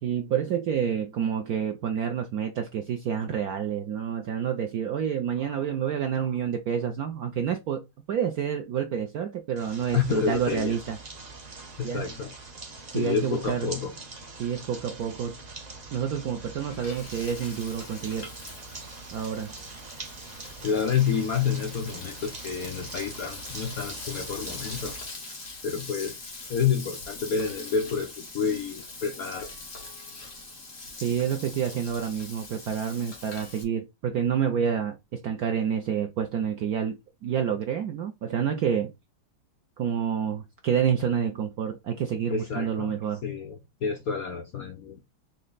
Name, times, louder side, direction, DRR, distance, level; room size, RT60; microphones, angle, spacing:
voice 1, 0.0-7.8 8.1-11.0 11.8-12.0 12.9-13.7 14.4-15.3 15.9-18.3 19.1-19.5 31.0-38.9 39.8-43.2, right 8 dB, 85° right, 0.8 m, -28 dB
sound 1, 9.6-25.0, right 3 dB, 40° right, 0.6 m, -43 dB
voice 2, 9.9-10.8 11.8-12.3 12.9-13.9 20.6-24.9 25.6-26.2 26.5-29.5 42.3-42.9 43.2-45.0, left 6 dB, 65° left, 0.8 m, -29 dB
Frying (food), 16.3-33.6, left 3 dB, 40° left, 1.8 m, -43 dB
4.3 x 3.2 x 3.9 m
omnidirectional pair, 2.3 m